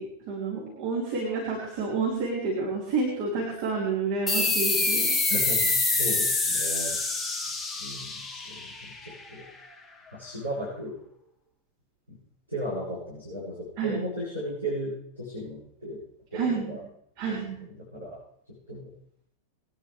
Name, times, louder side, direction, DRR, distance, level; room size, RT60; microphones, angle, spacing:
voice 1, 0.0-5.2 13.8-14.0 16.3-16.7 17.2-17.6, right 4 dB, 45° right, -5 dB, 5.0 m, -29 dB
sound 1, 4.3-9.4, left 3 dB, 10° left, 1.7 m, -26 dB
voice 2, 5.3-7.0 7.8-9.4 10.1-10.9 12.5-16.0 16.3-16.8 17.3-17.4 17.8-18.2 18.5-18.9, equal, 85° right, -10 dB, 7.6 m, -35 dB
23.5 x 10.5 x 3.5 m, 0.68 s
figure-of-eight pair, 90°, 0 cm